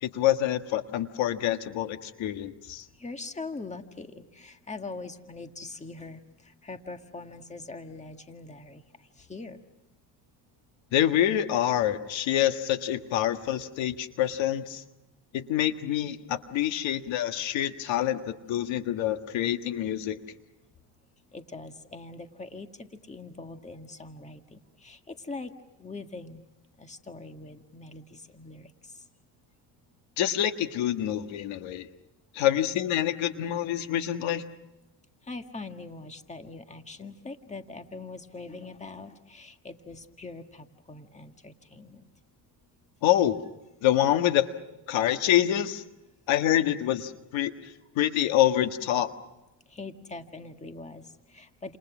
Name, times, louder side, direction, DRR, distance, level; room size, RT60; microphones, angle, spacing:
voice 1, 0.0-2.8 10.9-14.8 15.3-20.2 30.2-31.9 32.3-34.4 43.0-43.4 43.8-44.5 44.9-45.8 46.3-47.5 48.0-49.1, left 12 dB, 70° left, 8 dB, 1.7 m, -26 dB
voice 2, 3.0-8.8 9.2-9.6 21.3-25.5 25.8-26.4 26.8-29.0 35.3-42.1 49.7-51.8, left 3 dB, 15° left, 6 dB, 1.8 m, -42 dB
30.0 x 28.0 x 6.2 m, 0.98 s
cardioid pair, 115°, 48 cm